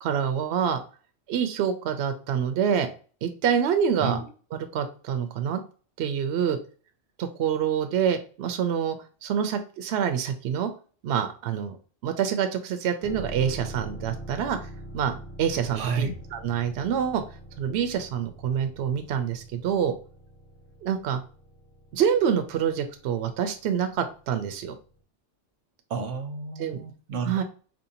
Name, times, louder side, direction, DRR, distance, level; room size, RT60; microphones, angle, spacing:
voice 1, 0.0-0.8 1.3-2.9 3.2-4.2 4.5-5.6 6.0-6.6 7.2-9.0 9.2-10.7 11.0-11.8 12.0-17.2 17.6-19.9 20.8-21.2 21.9-24.7 26.6-26.8 27.3-27.4, right 8 dB, 70° right, 0.8 m, -26 dB
voice 2, 4.0-4.3 15.7-16.2 25.9-27.4, right 5 dB, 85° right, 1.1 m, -31 dB
sound 1, 13.0-24.6 24.9-25.0, equal, 25° left, 0.7 m, -44 dB
4.3 x 2.6 x 2.8 m
omnidirectional pair, 1.2 m